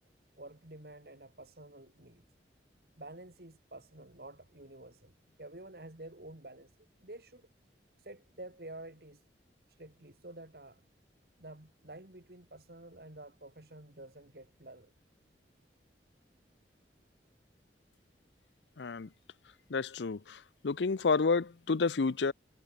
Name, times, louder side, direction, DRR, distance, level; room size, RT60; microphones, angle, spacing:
voice 1, 0.3-2.2 3.0-5.1 5.4-6.7 7.0-7.5 8.0-9.2 9.8-10.8 11.4-14.9, right 2 dB, 60° right, 2.6 m, -50 dB
voice 2, 18.8-19.1 19.7-22.3, left 4 dB, 85° left, 0.6 m, -30 dB
head